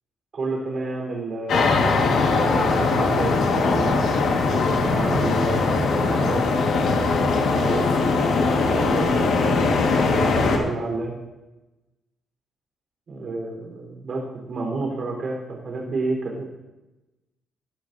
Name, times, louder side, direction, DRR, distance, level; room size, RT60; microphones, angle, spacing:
voice 1, 0.3-4.0 4.7-6.4 6.7-7.9 8.6-11.1 13.1-16.4, right 3 dB, 40° right, -1 dB, 4.1 m, -31 dB
sound 1, 1.5-10.6, left 3 dB, 70° left, 1.7 m, -20 dB
19.5 x 12.0 x 2.7 m, 1.0 s
cardioid pair, 165°, 0 cm